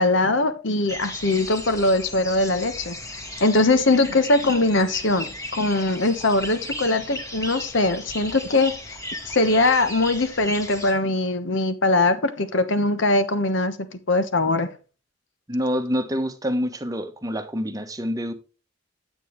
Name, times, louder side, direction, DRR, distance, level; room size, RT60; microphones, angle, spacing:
voice 1, 0.0-9.0 9.2-14.7, left 2 dB, 70° left, 1.2 m, -21 dB
sound 1, 0.9-10.9, left 1 dB, 20° left, 1.6 m, -36 dB
voice 2, 15.5-18.3, equal, 20° right, 1.1 m, -26 dB
9.1 x 8.4 x 3.1 m
head